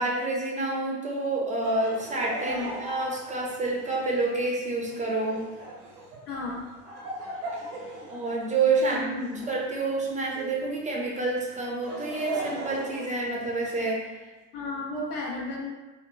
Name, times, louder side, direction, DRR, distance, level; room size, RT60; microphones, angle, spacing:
voice 1, 0.0-5.4 8.1-9.1 9.5-14.0, right 3 dB, 15° right, -3 dB, 0.5 m, -28 dB
Laughter, 1.6-10.7 11.5-13.9, right 2 dB, 85° right, 0.7 m, -40 dB
voice 2, 6.3-6.7 8.9-9.5 14.5-15.7, left 2 dB, 85° left, -3 dB, 0.7 m, -33 dB
2.9 x 2.1 x 2.2 m, 1.2 s
hypercardioid pair, 75°, 44 cm